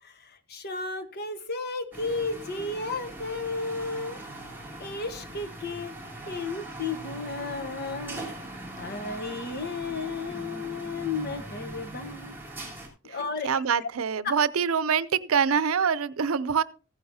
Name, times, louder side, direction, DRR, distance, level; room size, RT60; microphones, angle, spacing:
voice 1, 0.0-4.2 4.8-5.9 6.2-8.3 8.8-12.4 13.0-13.9, left 3 dB, 50° left, 1.3 m, -33 dB
sound 1, 1.9-12.9, right 1 dB, 10° right, 3.6 m, -41 dB
voice 2, 13.4-16.6, right 6 dB, 85° right, 0.6 m, -25 dB
16.0 x 9.5 x 2.7 m
head